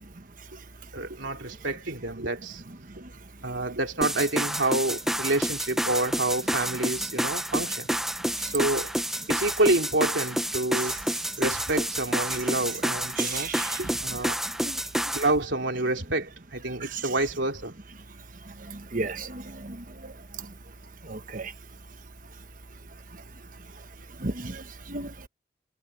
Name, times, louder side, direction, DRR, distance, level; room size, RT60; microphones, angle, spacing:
voice 1, 0.9-2.6 3.4-7.9 8.4-8.9 9.3-11.0 11.4-13.5 13.8-14.4 15.1-17.7, right 2 dB, 90° right, 2.9 m, -28 dB
sound 1, 4.0-15.3, equal, ahead, 1.0 m, -29 dB
voice 2, 13.2-13.7 14.6-14.7 18.9-19.4 21.1-21.5 24.2-24.6 24.9-25.1, right 3 dB, 45° right, 1.3 m, -32 dB
head